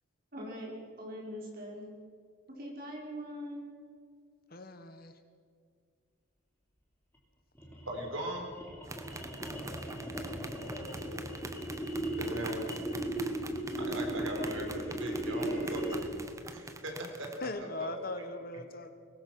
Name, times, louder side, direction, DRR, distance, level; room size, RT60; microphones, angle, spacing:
voice 1, 0.3-1.9 2.5-3.7, equal, 45° right, -2 dB, 5.5 m, -42 dB
voice 2, 4.5-5.1 17.4-18.9, left 2 dB, 45° left, 9 dB, 1.4 m, -39 dB
sound 1, 7.5-16.2, right 1 dB, 10° left, 3.5 m, -37 dB
voice 3, 7.9-8.5 12.2-12.8 13.8-16.2 16.5-17.3 17.6-18.2, right 1 dB, 80° right, 2 dB, 4.4 m, -39 dB
sound 2, 8.8-17.5, right 2 dB, 15° right, 1.1 m, -45 dB
22.5 x 20.0 x 6.1 m, 2.1 s
head